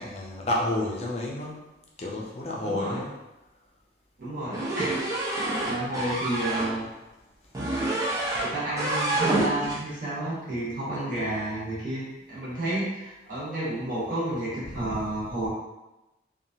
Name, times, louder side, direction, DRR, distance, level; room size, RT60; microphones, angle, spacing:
voice 1, 0.0-1.7 2.0-3.1 14.6-14.9, left 1 dB, 35° left, -2 dB, 0.5 m, -30 dB
voice 2, 2.6-3.0 4.2-4.9 5.7-6.9 8.4-12.0 12.3-15.5, right 1 dB, 50° right, -8 dB, 1.0 m, -31 dB
sound 1, 4.5-6.7 7.5-8.5 8.8-9.8, right 2 dB, 20° right, 0.5 m, -27 dB
2.8 x 2.4 x 2.7 m, 1.0 s
head